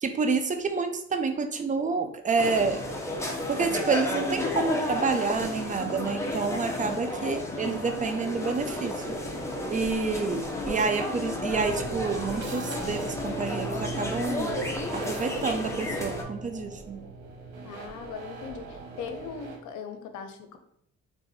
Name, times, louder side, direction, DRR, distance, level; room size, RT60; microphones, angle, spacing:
voice 1, 0.0-2.8 3.5-9.2 9.7-14.5 14.9-17.1, right 4 dB, 25° right, 7 dB, 0.5 m, -28 dB
sound 1, 2.4-16.2, left 1 dB, 10° left, 0.8 m, -32 dB
voice 2, 7.2-7.5 17.6-20.6, left 6 dB, 80° left, 7 dB, 0.6 m, -40 dB
sound 2, 11.5-19.6, right 4 dB, 80° right, 1.1 m, -40 dB
3.4 x 2.6 x 4.0 m, 0.70 s
cardioid pair, 90°, 30 cm